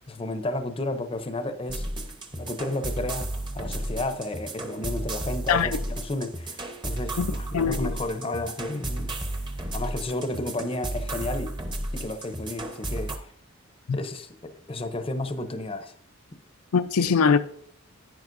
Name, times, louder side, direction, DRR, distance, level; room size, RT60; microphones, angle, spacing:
voice 1, 0.1-1.9 2.3-9.1 9.7-11.5 11.9-13.3 13.9-15.9 16.3-16.4, left 2 dB, 25° left, 0.6 m, -32 dB
sound 1, 1.7-13.2, right 1 dB, 20° right, 0.8 m, -33 dB
voice 2, 7.2-7.9 13.9-14.0 16.7-17.4, left 6 dB, 85° left, 0.5 m, -22 dB
10.5 x 9.3 x 2.6 m
head